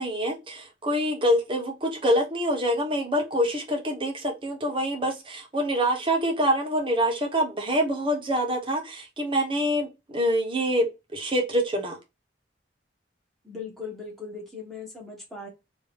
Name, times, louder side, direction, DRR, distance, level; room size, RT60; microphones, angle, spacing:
voice 1, 0.0-10.9 11.1-12.0, equal, 30° right, 1.0 m, -25 dB
voice 2, 13.4-15.5, left 4 dB, ahead, 1.4 m, -39 dB
3.3 x 2.9 x 3.5 m
head